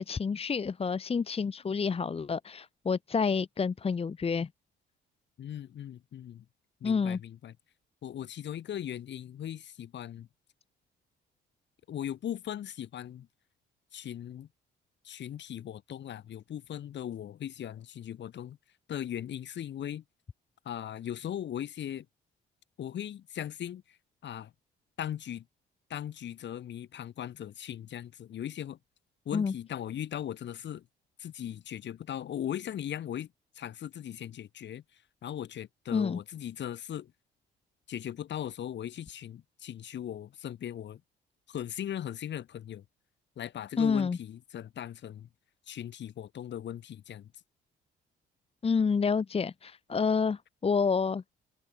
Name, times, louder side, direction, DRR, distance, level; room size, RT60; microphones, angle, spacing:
voice 1, 0.0-4.5 6.8-7.2 29.3-29.5 35.9-36.2 43.8-44.2 48.6-51.2, left 5 dB, 30° left, 1.0 m, -28 dB
voice 2, 5.4-6.4 6.8-7.5 8.0-10.3 11.9-13.3 13.9-14.5 15.0-18.6 18.9-20.0 20.6-22.1 22.8-24.0 24.2-24.5 25.0-25.5 25.9-28.8 29.3-30.9 31.2-37.1 37.9-41.0 41.5-42.8 43.4-45.3 45.7-47.3, left 10 dB, 65° left, 5.9 m, -38 dB
cardioid pair, 85°, 20 cm